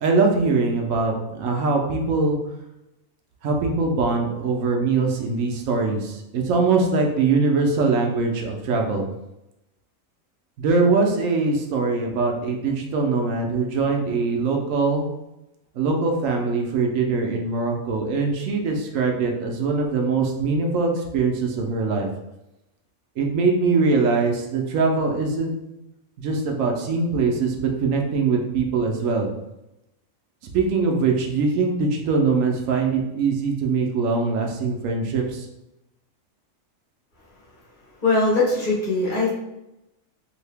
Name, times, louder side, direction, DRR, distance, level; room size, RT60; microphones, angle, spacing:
voice 1, 0.0-2.4 3.4-9.0 10.6-15.1 15.7-22.1 23.2-25.5 26.2-29.3 30.5-35.5, right 4 dB, 80° right, 2 dB, 1.0 m, -22 dB
voice 2, 38.0-39.3, left 3 dB, 40° left, -7 dB, 1.1 m, -20 dB
2.8 x 2.7 x 3.3 m, 0.91 s
omnidirectional pair, 1.4 m